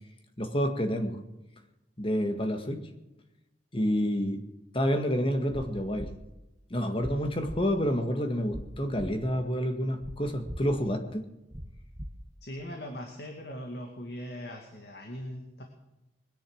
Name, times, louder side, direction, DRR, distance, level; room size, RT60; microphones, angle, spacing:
voice 1, 0.4-1.2 2.0-2.9 3.7-4.4 4.7-6.1 6.7-11.2, equal, 30° left, 6 dB, 1.9 m, -28 dB
sound 1, 5.5-5.6 6.0-6.1 7.0-7.1 7.5-7.6 8.5-8.6 9.0-9.1 10.0-10.1 10.5-10.6 11.5-11.6 12.0-12.1, equal, 25° right, 1.4 m, -38 dB
voice 2, 12.4-15.6, equal, 65° left, 2 dB, 2.4 m, -40 dB
22.0 x 10.5 x 6.4 m, 0.96 s
head